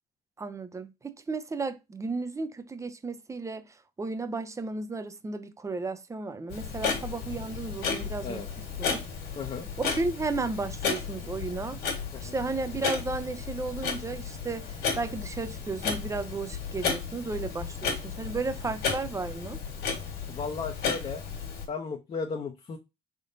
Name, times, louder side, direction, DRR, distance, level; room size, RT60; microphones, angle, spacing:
voice 1, 0.4-8.4 8.8-9.1 9.8-11.8 12.2-19.6, right 3 dB, 20° right, 0.5 m, -34 dB
Clock, 6.5-21.7, left 5 dB, 75° left, 1.6 m, -34 dB
voice 2, 9.4-9.7 12.1-12.3 20.3-21.2 21.7-22.8, left 5 dB, 35° left, 0.6 m, -35 dB
3.8 x 3.6 x 2.6 m
cardioid pair, 110°, 17 cm